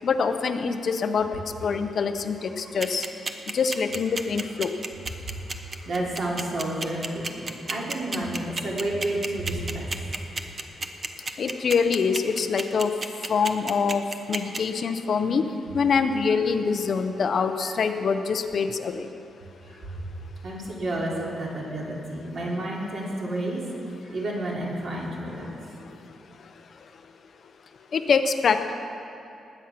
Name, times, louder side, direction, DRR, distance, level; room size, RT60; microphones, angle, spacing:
voice 1, 0.0-3.0 3.5-4.7 11.4-12.9 13.3-15.4 15.7-19.1 27.9-28.7, left 5 dB, 45° left, 8 dB, 0.6 m, -25 dB
sound 1, 2.8-14.6, right 3 dB, 25° right, 0.7 m, -30 dB
voice 2, 5.8-10.0 15.2-15.3 17.6-17.8 19.6-20.0 20.4-23.6 24.1-25.5, right 1 dB, 45° right, -3 dB, 2.9 m, -30 dB
20.0 x 8.9 x 5.9 m, 2.7 s
wide cardioid pair, 175°, 0 cm